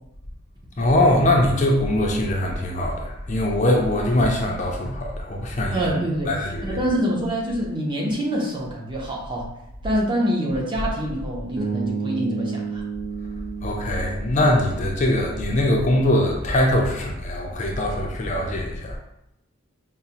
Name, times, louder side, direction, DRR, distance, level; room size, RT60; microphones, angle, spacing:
voice 1, 0.8-5.8 6.3-6.8 13.6-19.0, left 1 dB, 35° left, 0 dB, 0.4 m, -22 dB
voice 2, 5.7-9.5 9.8-12.8, equal, 20° right, -3 dB, 0.6 m, -25 dB
Bass guitar, 11.6-15.6, right 5 dB, 60° right, 0.7 m, -31 dB
4.8 x 2.0 x 2.8 m, 0.84 s
head